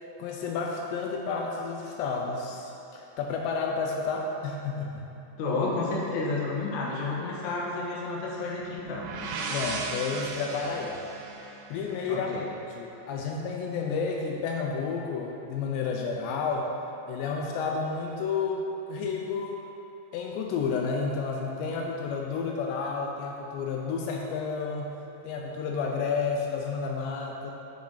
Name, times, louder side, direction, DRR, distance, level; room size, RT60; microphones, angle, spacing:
voice 1, 0.2-5.0 9.5-11.0 11.7-12.5 12.8-16.7 17.1-19.6 20.1-25.0 25.2-27.5, left 5 dB, 85° left, 0 dB, 2.7 m, -31 dB
voice 2, 5.4-9.1 12.1-12.4, left 3 dB, 65° left, -5 dB, 1.8 m, -31 dB
sound 1, 8.6-12.4, right 3 dB, 90° right, 3.2 m, -37 dB
8.7 x 7.1 x 3.9 m, 3.0 s
omnidirectional pair, 5.3 m